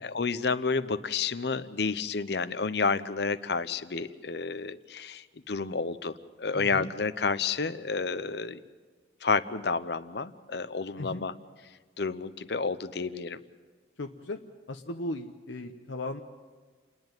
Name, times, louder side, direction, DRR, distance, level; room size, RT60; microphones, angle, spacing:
voice 1, 0.0-8.6 9.2-11.3 12.0-13.4, left 4 dB, 65° left, 14 dB, 0.8 m, -30 dB
voice 2, 6.5-6.9 11.0-11.3 14.0-14.4 14.7-16.2, left 2 dB, 85° left, 4 dB, 0.9 m, -37 dB
29.0 x 10.5 x 9.2 m, 1.5 s
head